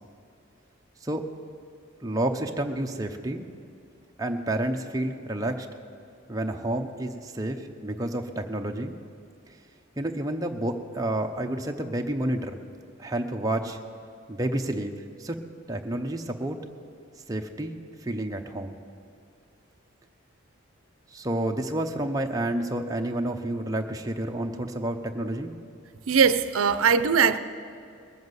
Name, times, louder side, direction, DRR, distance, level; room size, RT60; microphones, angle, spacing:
voice 1, 2.0-3.4 4.2-5.7 6.3-9.0 10.0-12.6 13.0-13.8 14.3-14.9 15.2-15.4 15.7-16.6 17.3-18.8 21.1-25.5, right 1 dB, 15° right, 3 dB, 0.7 m, -30 dB
voice 2, 26.1-27.4, right 6 dB, 90° right, 12 dB, 0.6 m, -20 dB
20.5 x 7.3 x 8.0 m, 2.5 s
head